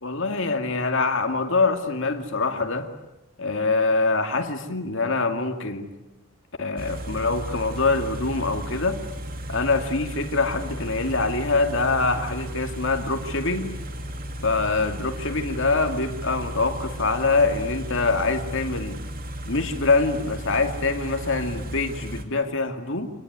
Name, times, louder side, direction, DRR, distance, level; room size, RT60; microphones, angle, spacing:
voice 1, 0.0-2.9 3.4-5.9 6.6-9.0 9.5-13.7 14.4-19.0 19.5-23.1, left 3 dB, 60° left, 6 dB, 2.4 m, -24 dB
Car / Idling, 6.8-22.2, equal, 40° right, 2.5 m, -35 dB
27.0 x 20.5 x 9.5 m, 0.97 s
head